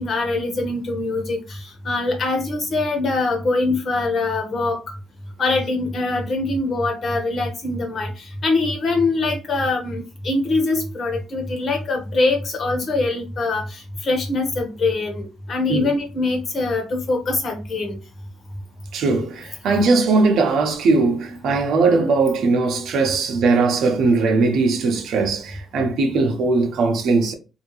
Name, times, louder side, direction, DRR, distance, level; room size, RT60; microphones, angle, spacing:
voice 1, 0.0-4.8 5.4-18.0, left 3 dB, 50° left, 1.3 m, -23 dB
voice 2, 18.9-27.3, right 3 dB, 70° right, 1.0 m, -19 dB
3.5 x 2.7 x 3.1 m
cardioid pair, 120°, 0 cm